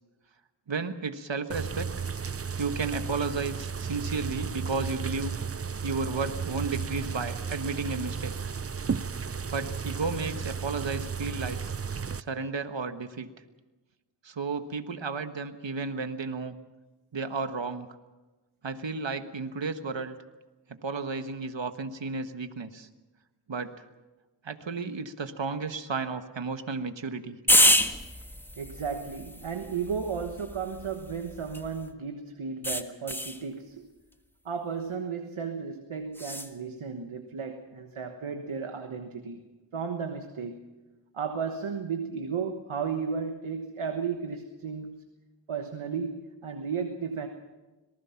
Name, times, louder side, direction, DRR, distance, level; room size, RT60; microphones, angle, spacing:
voice 1, 0.7-1.9 2.6-5.3 5.8-8.3 9.5-11.6 12.2-13.3 14.2-16.6 17.1-17.9 18.6-20.2 20.7-22.9 23.5-23.8 24.4-27.4, right 4 dB, 65° right, 9 dB, 1.4 m, -33 dB
sound 1, 1.5-12.2, right 6 dB, 30° right, 0.6 m, -34 dB
sound 2, 27.5-31.9 32.6-33.4 36.1-36.5, equal, 5° left, 1.5 m, -27 dB
voice 2, 28.6-33.8 34.4-39.4 39.7-40.6 41.1-45.0 45.5-47.3, right 6 dB, 90° right, 5 dB, 1.4 m, -34 dB
25.5 x 19.5 x 5.9 m, 1.2 s
cardioid pair, 45°, 48 cm